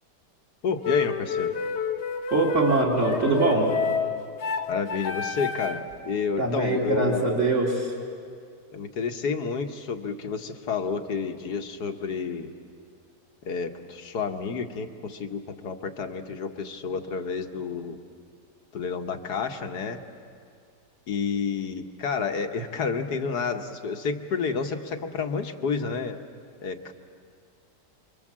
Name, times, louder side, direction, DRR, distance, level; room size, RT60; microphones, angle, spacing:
voice 1, 0.6-1.6 4.7-7.5 8.7-12.5 13.4-18.0 18.7-20.0 21.1-26.2 26.6-26.9, left 5 dB, 65° left, 6 dB, 1.7 m, -30 dB
sound 1, 0.8-5.9, left 6 dB, 45° left, 1.1 m, -29 dB
voice 2, 2.3-3.7 6.4-7.9, right 2 dB, 40° right, -2 dB, 2.9 m, -23 dB
29.5 x 23.5 x 7.4 m, 2.3 s
omnidirectional pair, 1.9 m